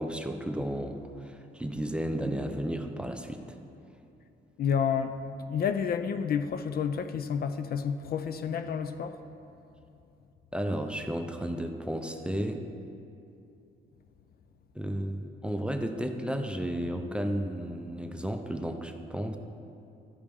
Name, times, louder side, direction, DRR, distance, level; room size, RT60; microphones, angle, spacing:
voice 1, 0.0-3.4 10.5-12.6 14.8-19.4, right 1 dB, 5° right, 6 dB, 0.5 m, -33 dB
voice 2, 4.6-5.1 5.5-9.2, left 7 dB, 50° left, 10 dB, 0.4 m, -29 dB
12.0 x 5.1 x 3.5 m, 2.7 s
cardioid pair, 90°, 20 cm